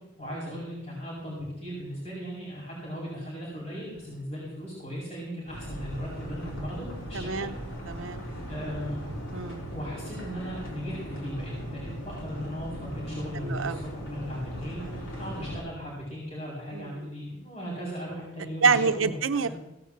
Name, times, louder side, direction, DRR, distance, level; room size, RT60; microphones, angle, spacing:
voice 1, 0.2-7.5 8.5-9.0 9.7-19.5, equal, 35° left, -6 dB, 5.0 m, -37 dB
sound 1, 5.5-15.6, equal, 75° left, 3.6 m, -38 dB
voice 2, 7.1-7.6 7.9-8.2 9.3-9.6 13.4-13.8 16.7-17.1 18.6-19.5, right 5 dB, 85° right, 10 dB, 0.7 m, -26 dB
16.0 x 5.9 x 7.4 m, 0.93 s
head